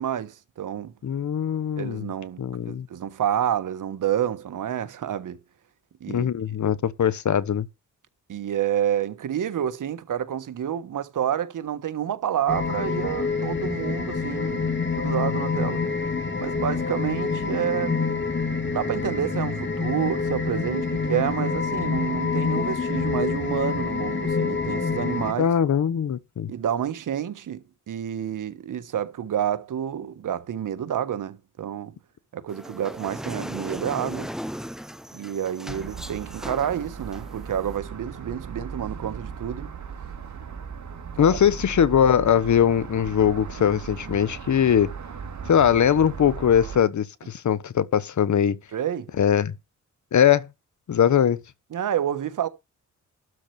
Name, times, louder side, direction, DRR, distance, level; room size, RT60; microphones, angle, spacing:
voice 1, 0.0-0.9 1.8-5.4 6.0-6.3 8.3-14.7 14.9-15.8 16.4-18.0 18.7-25.5 26.5-31.9 32.3-34.3 35.1-39.7 48.7-49.1 51.7-52.5, right 10 dB, 80° right, 1.3 m, -29 dB
voice 2, 1.0-2.1 2.4-2.9 6.1-7.7 25.4-26.5 41.2-44.9 45.5-48.6 49.2-49.5 50.1-50.5 50.9-51.4, left 8 dB, 65° left, 1.1 m, -21 dB
sound 1, 12.5-25.3, left 4 dB, 35° left, 2.6 m, -27 dB
sound 2, 32.5-37.8, equal, ahead, 0.9 m, -37 dB
sound 3, 35.7-46.8, right 6 dB, 65° right, 2.4 m, -37 dB
12.5 x 4.5 x 6.8 m
cardioid pair, 75°, 31 cm